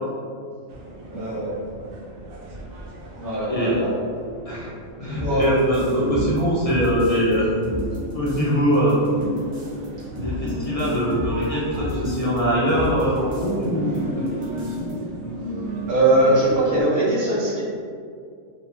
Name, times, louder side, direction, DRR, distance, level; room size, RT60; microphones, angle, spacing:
sound 1, 0.7-16.8, equal, 80° right, 1.1 m, -33 dB
voice 1, 1.1-1.5 3.2-3.9 5.0-5.4 15.9-17.6, right 1 dB, 15° right, -10 dB, 0.9 m, -21 dB
voice 2, 5.0-7.5 8.1-9.1 10.1-14.7, equal, 35° left, -7 dB, 0.6 m, -22 dB
sound 2, 5.1-7.4 7.6-8.5 8.7-12.4 12.7-13.7 13.9-14.0 14.3-14.9, left 1 dB, 45° right, 0.8 m, -33 dB
4.1 x 2.8 x 2.7 m, 2.3 s
omnidirectional pair, 1.4 m